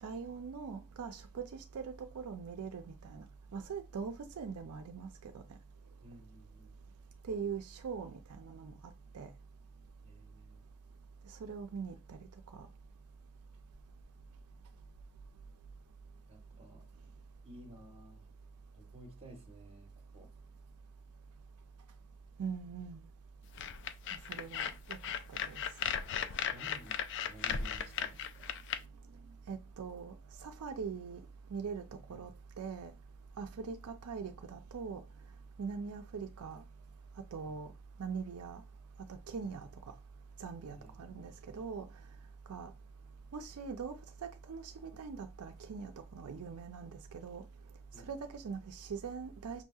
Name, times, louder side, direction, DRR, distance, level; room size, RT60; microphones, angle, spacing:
voice 1, 0.0-3.2 3.5-5.4 7.3-8.8 9.1-9.3 11.3-12.3 12.5-12.7 22.4-23.1 24.1-25.0 25.3-25.6 29.5-30.1 30.4-31.2 31.5-31.8 32.1-32.3 32.6-32.9 33.4-35.0 35.6-36.6 37.3-37.7 38.0-38.6 39.3-39.7 40.4-41.9 42.5-42.7 43.3-43.9 44.5-47.4 48.1-49.6, right 5 dB, 80° right, 0.4 m, -42 dB
voice 2, 6.0-6.7 10.0-10.7 16.3-16.8 17.4-18.3 18.7-20.3 26.5-28.5 32.1-32.3 37.4-37.6 39.4-39.5 40.8-41.3 47.9-48.2, right 1 dB, 25° right, 1.2 m, -55 dB
sound 1, 23.6-28.8, left 8 dB, 55° left, 0.3 m, -36 dB
6.0 x 2.7 x 2.3 m
head